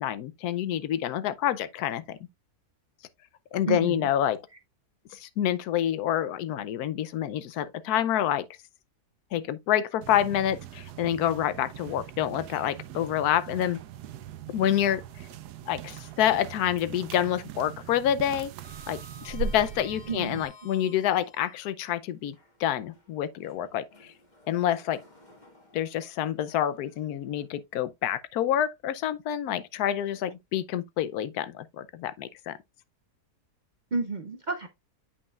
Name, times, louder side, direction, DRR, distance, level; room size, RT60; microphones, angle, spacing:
voice 1, 0.0-2.2 3.5-4.4 5.1-8.4 9.3-13.8 14.5-15.0 15.7-18.5 18.9-24.1 24.5-25.0 25.7-32.6, left 11 dB, 80° left, 1.1 m, -28 dB
voice 2, 3.7-4.1 20.1-20.5 33.9-34.7, right 4 dB, 65° right, 0.4 m, -31 dB
sound 1, 10.0-20.5, right 8 dB, 90° right, 1.2 m, -41 dB
Sliding door, 12.3-13.3 13.7-13.8 15.5-16.5 16.8-17.2 17.4-21.5 22.2-27.4, left 2 dB, 30° left, 1.8 m, -55 dB
8.3 x 5.4 x 2.3 m
omnidirectional pair, 1.7 m